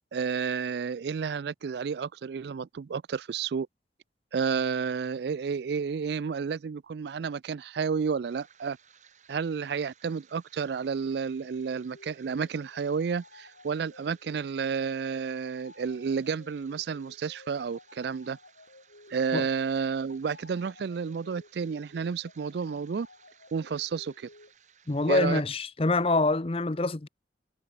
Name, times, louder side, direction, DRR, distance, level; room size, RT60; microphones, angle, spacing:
voice 1, 0.1-3.7 4.3-8.8 9.3-18.4 19.1-23.1 23.5-24.3 25.1-25.4, right 6 dB, 65° right, 0.4 m, -31 dB
sound 1, 8.3-25.1, right 7 dB, 40° right, 3.8 m, -61 dB
sound 2, 11.4-24.5, left 2 dB, 75° left, 7.3 m, -55 dB
voice 2, 24.9-27.1, left 2 dB, 30° left, 0.7 m, -25 dB
head